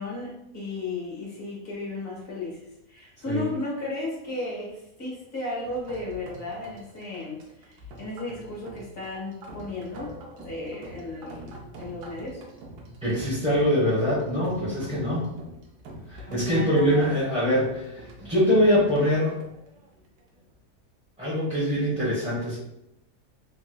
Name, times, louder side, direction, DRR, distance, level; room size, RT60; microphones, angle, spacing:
voice 1, 0.0-12.4 14.6-14.9 16.2-17.2, left 2 dB, 40° left, -4 dB, 1.1 m, -35 dB
sound 1, 5.6-20.5, right 1 dB, 85° right, 1.2 m, -45 dB
voice 2, 13.0-15.3 16.1-19.3 21.2-22.6, equal, 5° right, -11 dB, 0.6 m, -23 dB
3.3 x 2.8 x 2.2 m, 0.84 s
omnidirectional pair, 1.7 m